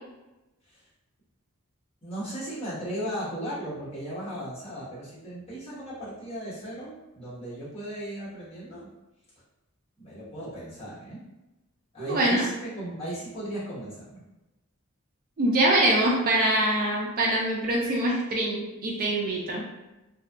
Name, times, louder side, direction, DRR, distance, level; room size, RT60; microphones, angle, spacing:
voice 1, 2.0-8.9 10.0-11.2 11.9-14.2, right 1 dB, 30° left, -10 dB, 1.1 m, -36 dB
voice 2, 12.0-12.5 15.4-19.6, right 1 dB, 40° right, -2 dB, 0.4 m, -24 dB
2.6 x 2.2 x 2.3 m, 1.0 s
head